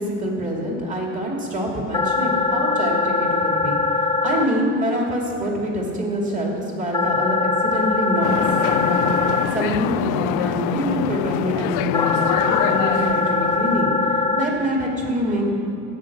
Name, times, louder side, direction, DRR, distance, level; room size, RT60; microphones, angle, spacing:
voice 1, 0.0-8.3 8.6-15.6, equal, 25° right, -1 dB, 2.5 m, -25 dB
sound 1, 1.9-4.4 6.9-9.4 11.9-14.4, left 3 dB, 15° left, 0.4 m, -21 dB
sound 2, 8.2-13.8, left 15 dB, 75° left, 0.5 m, -26 dB
13.5 x 9.1 x 7.3 m, 2.7 s
cardioid pair, 155°, 32 cm